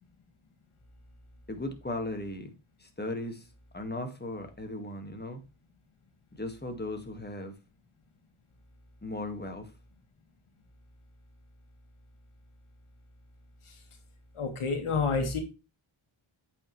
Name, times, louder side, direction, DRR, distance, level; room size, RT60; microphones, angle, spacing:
voice 1, 1.5-2.5 2.8-3.5 3.7-5.4 6.3-7.5 9.0-9.7, left 2 dB, 20° left, 1.9 m, -37 dB
voice 2, 14.3-15.4, left 4 dB, 90° left, 1.9 m, -29 dB
8.4 x 5.6 x 3.2 m
wide cardioid pair, 75°, 49 cm